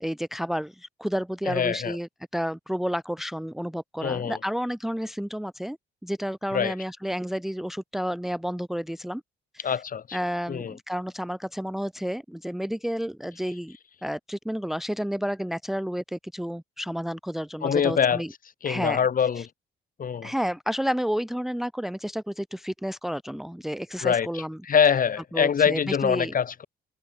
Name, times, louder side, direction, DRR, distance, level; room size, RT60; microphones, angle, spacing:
voice 1, 0.0-5.8 6.0-9.2 9.5-9.8 10.1-13.8 14.0-18.3 18.6-19.0 19.4-19.5 20.2-24.6 25.3-26.3, equal, ahead, 1.0 m, -31 dB
voice 2, 1.5-2.0 4.0-4.4 6.5-6.7 9.6-10.2 10.5-10.7 17.6-18.2 18.6-19.5 20.0-20.3 24.0-26.7, left 7 dB, 45° left, 3.5 m, -24 dB
cardioid pair, 120°, 20 cm